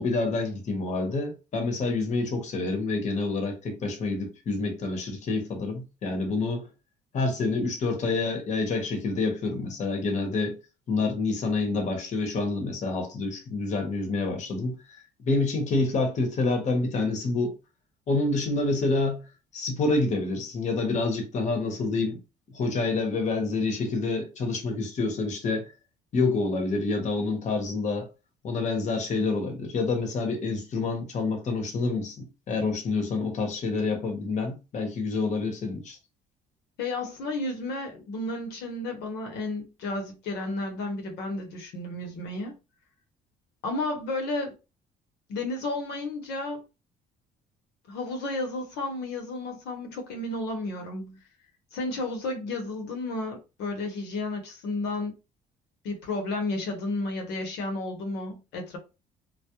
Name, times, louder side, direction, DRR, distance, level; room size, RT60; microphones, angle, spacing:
voice 1, 0.0-6.7 7.1-10.6 10.9-14.8 15.2-17.5 18.1-19.2 19.5-22.2 22.5-25.6 26.1-28.1 28.4-36.0, left 3 dB, 45° left, 0.8 m, -27 dB
voice 2, 36.8-42.6 43.6-44.6 45.3-46.6 47.9-51.2 51.7-55.1 55.8-58.8, left 2 dB, 85° left, 0.8 m, -32 dB
2.3 x 2.0 x 2.8 m
cardioid pair, 110°, 17 cm